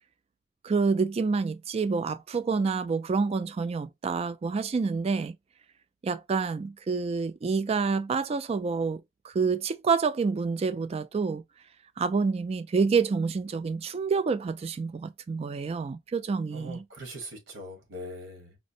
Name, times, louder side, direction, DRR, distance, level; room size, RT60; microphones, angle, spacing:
voice 1, 0.6-5.3 6.0-11.4 12.0-16.8, right 4 dB, 30° right, 0.3 m, -28 dB
voice 2, 16.5-18.6, equal, 75° right, 1.3 m, -41 dB
4.1 x 2.1 x 2.6 m
head